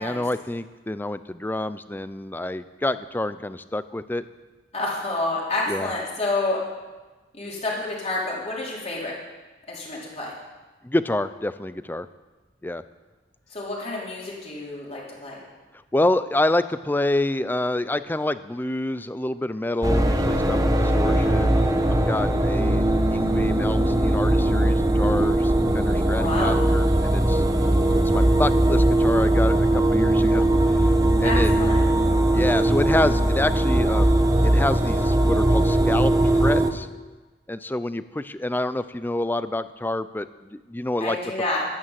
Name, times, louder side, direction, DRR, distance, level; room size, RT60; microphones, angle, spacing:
voice 1, 0.0-4.2 5.7-5.9 10.8-12.1 12.6-12.8 15.9-21.6 21.9-22.8 23.1-27.4 27.9-30.4 31.2-31.5 32.3-36.1 36.4-36.9 37.5-41.2, left 1 dB, 10° left, 14 dB, 0.5 m, -27 dB
voice 2, 4.7-6.6 7.3-9.1 9.7-10.3 13.5-15.4 26.1-26.6 31.2-31.8 41.0-41.6, left 2 dB, 35° left, -4 dB, 4.2 m, -29 dB
sound 1, 19.8-36.7, right 1 dB, 20° right, 1.0 m, -20 dB
12.5 x 11.5 x 7.6 m, 1.2 s
head